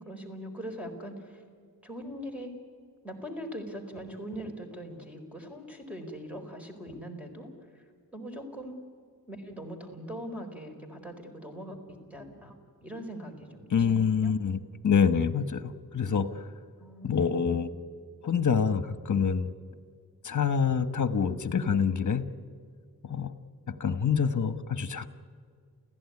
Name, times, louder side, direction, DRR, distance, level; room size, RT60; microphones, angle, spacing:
voice 1, 0.0-1.4 1.8-2.5 3.0-7.5 7.7-7.8 8.1-8.8 9.3-11.8 12.1-12.5 12.8-14.4 16.8-17.6, equal, 5° right, 4 dB, 4.3 m, -41 dB
voice 2, 13.7-16.4 17.0-17.7 18.2-19.5 20.2-22.3 23.0-23.3 23.7-25.1, left 6 dB, 55° left, 12 dB, 1.3 m, -26 dB
29.0 x 16.0 x 9.7 m, 2.1 s
wide cardioid pair, 130°, 35 cm